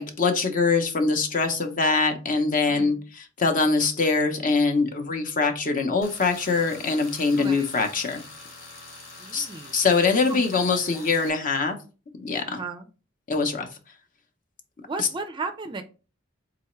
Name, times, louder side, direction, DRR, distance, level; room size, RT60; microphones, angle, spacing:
voice 1, 0.0-8.2 9.3-11.8 12.1-12.6 13.3-13.7 15.0-15.1, left 4 dB, 45° left, 5 dB, 0.7 m, -23 dB
voice 2, 2.7-3.0 7.4-7.7 9.2-10.0 10.3-11.4 12.5-12.9 14.8-15.8, right 3 dB, 25° right, 7 dB, 0.4 m, -36 dB
Tools, 6.0-11.3, left 3 dB, 90° left, 1.8 m, -44 dB
3.9 x 3.4 x 3.1 m, 0.32 s
head